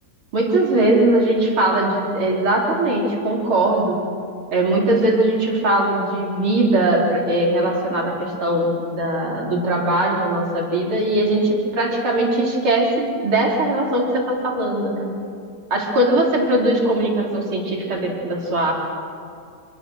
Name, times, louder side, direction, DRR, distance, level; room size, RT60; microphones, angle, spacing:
voice 1, 0.3-4.0 4.5-15.1 15.7-18.7, right 1 dB, 40° right, -2 dB, 4.5 m, -20 dB
26.5 x 22.0 x 6.5 m, 2.4 s
omnidirectional pair, 3.9 m